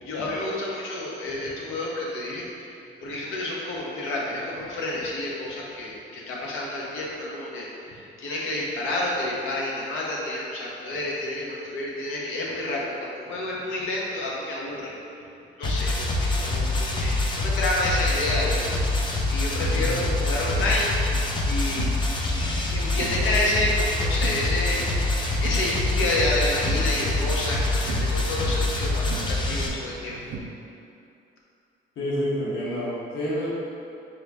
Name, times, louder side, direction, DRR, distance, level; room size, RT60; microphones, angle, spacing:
voice 1, 0.0-2.4 3.0-15.0 15.6-21.9 22.4-24.8 25.2-30.2, left 1 dB, 85° left, -3 dB, 0.8 m, -29 dB
sound 1, 15.6-29.7, left 2 dB, 25° left, 0.5 m, -25 dB
voice 2, 19.7-20.0 32.0-33.5, equal, 70° left, -8 dB, 1.1 m, -28 dB
sound 2, 20.6-30.4, right 4 dB, 65° right, 0.5 m, -39 dB
4.4 x 2.6 x 3.4 m, 2.6 s
cardioid pair, 90°, 20 cm